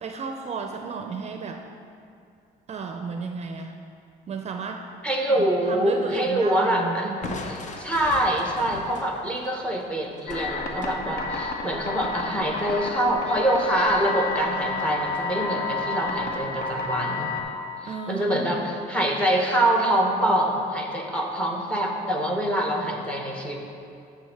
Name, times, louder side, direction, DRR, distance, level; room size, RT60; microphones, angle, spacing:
voice 1, 0.0-1.6 2.7-3.7 4.3-4.8 5.3-7.4 17.8-18.7, right 5 dB, 40° right, 4 dB, 0.5 m, -33 dB
voice 2, 5.0-7.1 7.5-17.3 17.8-23.6, right 1 dB, 5° left, 1 dB, 1.1 m, -25 dB
Crushing, 7.2-11.0, left 4 dB, 45° left, 0.7 m, -39 dB
sound 1, 10.3-17.4, left 3 dB, 65° left, 1.2 m, -30 dB
9.5 x 3.6 x 7.1 m, 2.5 s
cardioid pair, 110°, 17 cm